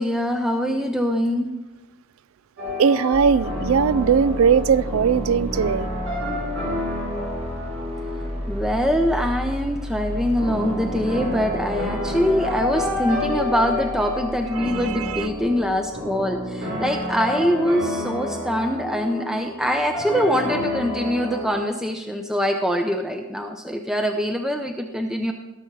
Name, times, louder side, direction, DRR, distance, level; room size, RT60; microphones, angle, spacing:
voice 1, 0.0-1.5 8.5-25.3, equal, 5° right, 0.6 m, -23 dB
sound 1, 2.6-21.5, left 1 dB, 70° right, 5.0 m, -30 dB
voice 2, 2.8-5.9 14.6-15.3, right 6 dB, 85° right, 0.4 m, -20 dB
sound 2, 3.1-16.2, equal, 30° right, 1.8 m, -33 dB
17.5 x 6.9 x 4.7 m
head